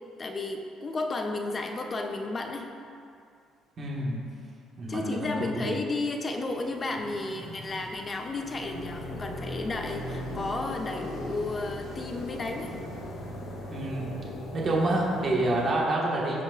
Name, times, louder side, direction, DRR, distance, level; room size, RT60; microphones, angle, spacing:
voice 1, 0.2-2.7 4.4-4.5 4.9-12.8, left 2 dB, 25° left, 4 dB, 0.7 m, -33 dB
voice 2, 3.8-4.2 4.8-5.8 13.7-14.1 14.5-16.4, right 2 dB, 35° right, -4 dB, 1.7 m, -28 dB
sound 1, 6.5-15.7, left 1 dB, 75° left, 1.9 m, -39 dB
16.0 x 5.3 x 2.5 m, 2.4 s
cardioid pair, 140°, 0 cm